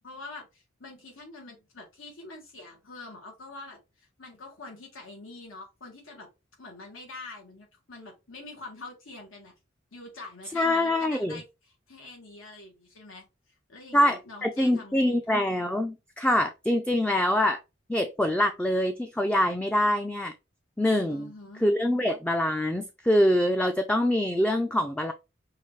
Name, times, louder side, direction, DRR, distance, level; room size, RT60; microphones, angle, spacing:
voice 1, 0.0-6.3 6.6-9.5 9.9-15.3 21.1-21.7, left 3 dB, 90° left, 1.6 m, -45 dB
voice 2, 10.5-11.4 13.9-17.6 17.9-20.3 20.8-21.3 21.6-25.1, left 1 dB, 5° left, 0.4 m, -24 dB
5.7 x 2.6 x 3.1 m
head